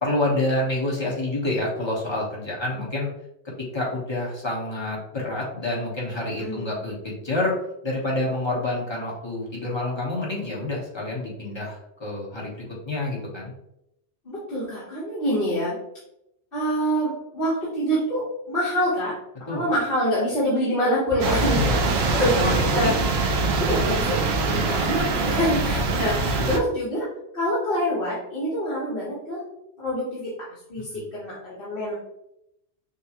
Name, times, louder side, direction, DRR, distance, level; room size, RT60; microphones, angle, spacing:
voice 1, 0.0-3.1 3.6-7.5 7.8-13.5 19.5-19.7 21.5-23.1 26.2-26.6 30.9-31.0, left 2 dB, 25° left, -4 dB, 1.2 m, -28 dB
voice 2, 6.4-6.7 14.2-15.8 16.5-19.1 19.5-21.6 21.9-22.9 23.6-27.1 27.3-29.5 29.8-32.0, equal, 55° left, -10 dB, 1.6 m, -26 dB
sound 1, 21.2-26.6, right 3 dB, 70° right, 0.9 m, -23 dB
6.4 x 2.2 x 2.9 m, 0.83 s
omnidirectional pair, 1.1 m